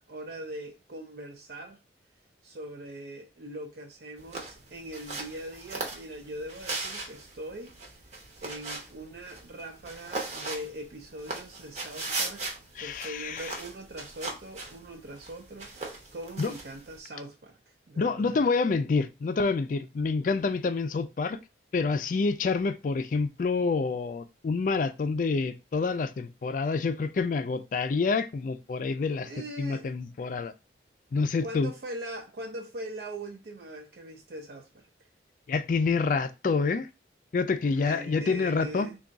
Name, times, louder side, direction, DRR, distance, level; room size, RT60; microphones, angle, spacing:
voice 1, 0.0-1.8 2.4-8.1 8.4-18.5 29.3-29.9 31.4-34.9 37.8-39.0, right 1 dB, 55° right, 0.4 m, -41 dB
sound 1, 4.2-17.0, right 3 dB, 40° right, 0.8 m, -39 dB
voice 2, 12.8-13.5 16.4-16.5 18.0-21.4 21.7-29.3 29.6-30.5 31.1-31.7 35.5-36.9 37.3-38.9, left 4 dB, 45° left, 0.3 m, -27 dB
3.5 x 2.3 x 3.9 m
head